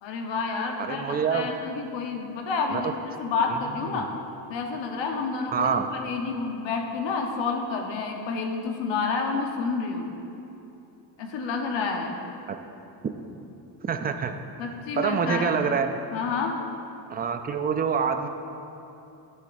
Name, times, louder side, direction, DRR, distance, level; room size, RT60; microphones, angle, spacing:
voice 1, 0.0-4.1 4.5-10.1 11.2-12.2 14.6-15.5 16.1-16.6, left 4 dB, 70° left, 2 dB, 1.1 m, -29 dB
voice 2, 0.9-1.5 2.7-2.8 3.5-3.6 3.9-4.0 5.5-5.9 12.5-12.6 13.8-14.3 15.0-16.0 17.1-18.3, right 6 dB, 25° right, 7 dB, 0.3 m, -26 dB
10.5 x 7.6 x 2.6 m, 2.9 s
cardioid pair, 115°, 45 cm